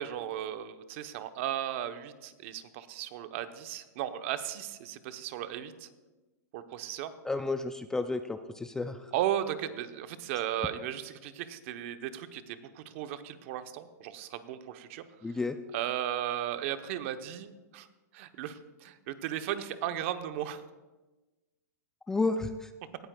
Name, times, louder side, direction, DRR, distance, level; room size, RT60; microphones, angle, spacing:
voice 1, 0.0-5.9 6.5-7.1 9.1-15.0 15.7-17.9 18.1-20.6, right 11 dB, 45° right, 9 dB, 0.9 m, -35 dB
voice 2, 7.2-9.1 15.2-15.6 22.1-22.7, left 3 dB, 5° left, 9 dB, 0.3 m, -31 dB
18.0 x 13.5 x 2.3 m, 1.2 s
hypercardioid pair, 150°, 9 cm